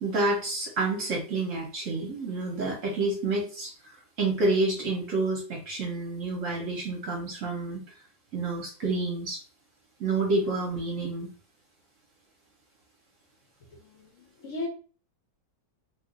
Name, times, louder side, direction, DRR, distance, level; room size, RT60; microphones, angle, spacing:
voice 1, 0.0-3.7 4.2-7.8 8.3-9.4 10.0-11.3, right 2 dB, 60° right, 0 dB, 0.9 m, -29 dB
voice 2, 13.7-14.7, left 2 dB, 60° left, 1 dB, 0.9 m, -37 dB
2.8 x 2.3 x 3.7 m, 0.38 s
omnidirectional pair, 1.9 m